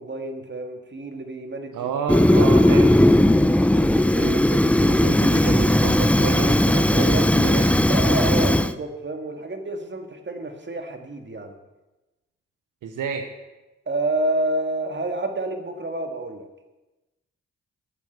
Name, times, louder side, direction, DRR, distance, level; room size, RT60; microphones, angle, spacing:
voice 1, 0.0-1.9 2.4-2.5 3.7-4.0 6.9-11.6 13.9-16.4, right 2 dB, 35° right, 5 dB, 2.0 m, -29 dB
voice 2, 1.7-3.4 4.1-7.8 12.8-13.3, right 6 dB, 75° right, 5 dB, 1.0 m, -30 dB
Fire, 2.1-8.7, left 1 dB, 5° left, 0.6 m, -17 dB
10.0 x 7.2 x 8.0 m, 1.1 s
supercardioid pair, 45°, 31 cm